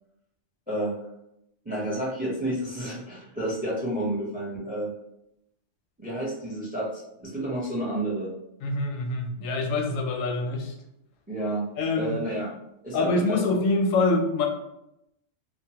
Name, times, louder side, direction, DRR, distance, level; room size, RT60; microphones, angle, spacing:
voice 1, 0.7-1.0 1.6-4.9 6.0-8.3 11.3-11.7 12.0-12.5 12.8-13.4, right 1 dB, 15° right, -5 dB, 0.4 m, -30 dB
voice 2, 8.6-10.7 11.8-12.2 12.9-14.5, left 3 dB, 85° left, 2 dB, 1.0 m, -25 dB
2.8 x 2.0 x 2.8 m, 0.82 s
omnidirectional pair, 1.3 m